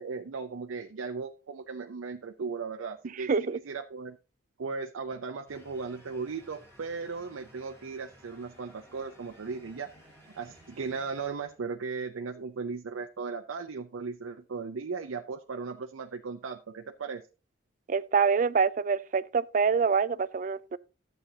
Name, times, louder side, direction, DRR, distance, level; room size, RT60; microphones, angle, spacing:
voice 1, 0.0-4.2 4.6-17.2, right 4 dB, 90° right, 0.6 m, -37 dB
voice 2, 3.3-3.6 17.9-20.8, right 5 dB, 40° right, 0.3 m, -26 dB
sound 1, 5.5-11.8, equal, 10° left, 5.1 m, -56 dB
11.5 x 7.8 x 2.8 m
head